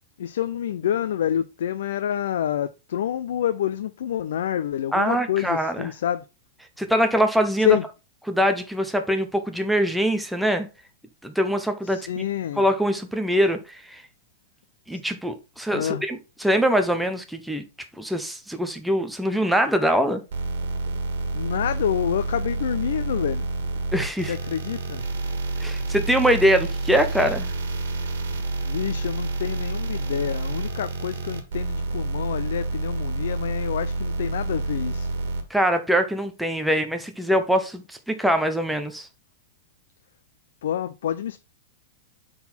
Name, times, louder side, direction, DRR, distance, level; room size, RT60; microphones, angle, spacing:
voice 1, 0.2-6.2 7.6-7.8 11.8-12.6 14.9-15.0 15.7-16.0 21.3-23.5 24.3-25.0 28.6-35.1 40.6-41.4, left 10 dB, 80° left, 0.4 m, -27 dB
voice 2, 4.9-5.9 6.8-7.8 8.3-10.7 11.2-12.1 12.6-14.0 14.9-17.6 18.0-20.2 23.9-24.3 25.6-27.5 35.5-39.1, equal, ahead, 0.5 m, -23 dB
sound 1, 20.3-35.4, right 2 dB, 85° right, 1.5 m, -28 dB
6.0 x 3.8 x 4.2 m
supercardioid pair, 170°, 0 cm